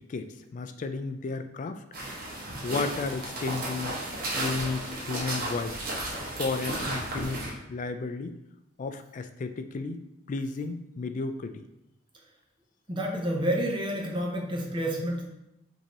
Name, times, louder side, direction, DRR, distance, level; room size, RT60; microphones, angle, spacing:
voice 1, 0.1-1.8 2.6-3.9 4.4-5.8 6.3-8.4 8.8-10.0 10.3-11.6, left 4 dB, 40° left, 8 dB, 0.3 m, -33 dB
sound 1, 1.9-7.5, right 1 dB, 50° right, 1.0 m, -34 dB
voice 2, 12.9-15.3, right 1 dB, 25° right, 0 dB, 0.7 m, -29 dB
5.3 x 2.8 x 3.0 m, 0.85 s
head